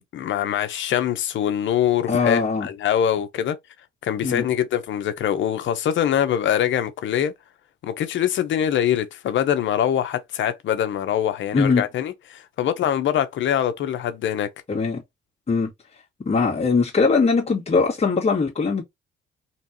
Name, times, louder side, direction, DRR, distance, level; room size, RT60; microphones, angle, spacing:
voice 1, 0.0-3.6 4.0-7.3 7.8-14.5, left 10 dB, 75° left, 1.0 m, -23 dB
voice 2, 2.1-2.7 4.2-4.4 11.5-11.8 14.7-15.0 15.5-15.7 16.3-18.8, left 4 dB, 30° left, 2.0 m, -21 dB
4.4 x 3.1 x 2.9 m
cardioid pair, 90°, 20 cm